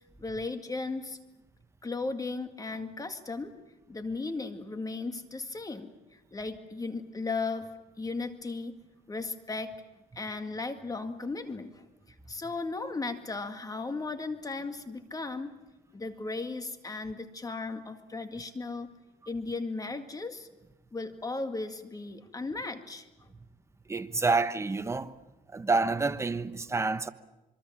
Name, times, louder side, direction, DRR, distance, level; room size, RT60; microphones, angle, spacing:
voice 1, 0.2-1.2 1.8-3.5 3.9-7.7 8.0-8.8 9.1-9.7 10.2-11.8 12.3-15.5 15.9-18.9 19.3-20.5 20.9-23.1, left 3 dB, 20° left, 2.1 m, -36 dB
voice 2, 23.9-25.1 25.5-27.1, right 3 dB, 15° right, 1.1 m, -28 dB
26.5 x 23.0 x 7.5 m
cardioid pair, 110°, 17 cm